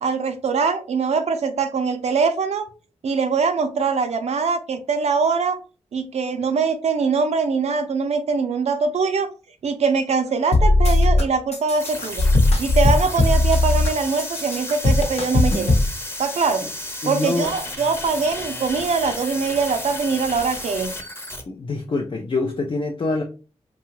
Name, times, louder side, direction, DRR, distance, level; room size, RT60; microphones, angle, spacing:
voice 1, 0.0-2.7 3.0-5.6 5.9-9.3 9.6-12.2 12.6-15.7 16.2-16.6 17.1-20.9, right 5 dB, 65° right, 7 dB, 0.4 m, -22 dB
sound 1, 10.5-11.2 11.5-13.9 14.2-15.9, left 2 dB, 60° left, 0.9 m, -17 dB
sound 2, 11.8-21.4, left 1 dB, 20° left, 0.8 m, -33 dB
voice 2, 17.0-17.5 21.5-23.2, left 3 dB, 45° left, 2 dB, 0.5 m, -25 dB
2.7 x 2.3 x 3.0 m, 0.36 s
cardioid pair, 55°, 12 cm